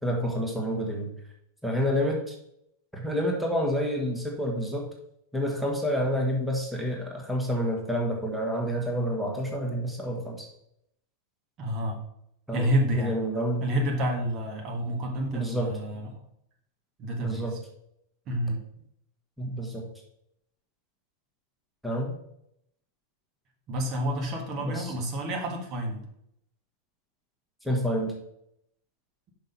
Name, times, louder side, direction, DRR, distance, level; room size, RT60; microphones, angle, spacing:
voice 1, 0.0-1.1 1.6-2.3 2.9-4.9 5.3-10.5 12.5-13.7 15.3-15.7 17.2-17.5 19.4-19.8 21.8-22.1 24.6-24.9 27.6-28.1, equal, ahead, -1 dB, 1.6 m, -28 dB
voice 2, 11.6-12.0 12.5-13.1 13.6-16.2 17.0-17.4 18.3-18.6 23.7-26.0, equal, 35° right, 1 dB, 1.6 m, -29 dB
5.8 x 5.4 x 5.4 m, 0.75 s
figure-of-eight pair, 90°, 0 cm